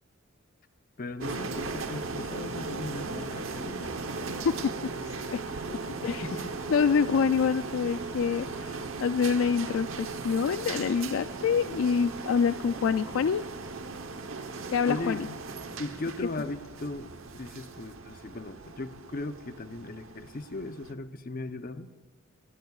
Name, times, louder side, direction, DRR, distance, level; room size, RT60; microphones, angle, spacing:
voice 1, 1.0-3.9 6.0-6.5 14.9-15.2 15.8-21.9, left 2 dB, 45° left, 10 dB, 0.7 m, -37 dB
sound 1, 1.2-20.9, right 3 dB, 80° right, 1.0 m, -38 dB
voice 2, 5.0-6.2 6.7-13.4 14.7-15.3, left 6 dB, 70° left, 12 dB, 0.3 m, -27 dB
21.5 x 18.5 x 2.4 m, 1.3 s
head